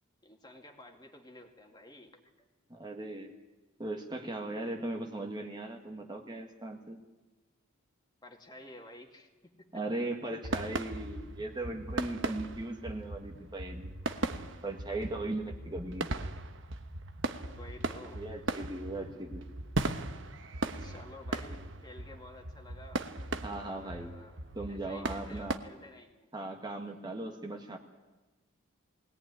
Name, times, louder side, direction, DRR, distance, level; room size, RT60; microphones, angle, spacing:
voice 1, 0.2-2.5 8.2-9.8 17.6-18.2 18.5-18.6 20.8-23.1 23.6-24.4 24.7-26.3, left 1 dB, 20° left, 3 dB, 2.2 m, -52 dB
voice 2, 2.7-3.3 3.8-7.0 9.7-13.9 14.6-16.2 18.1-19.5 23.4-24.1 24.5-25.6 26.3-27.8, right 2 dB, 20° right, 2 dB, 1.5 m, -38 dB
sound 1, 10.4-25.6, right 2 dB, 60° right, 1.2 m, -38 dB
21.5 x 18.0 x 9.7 m, 1.2 s
head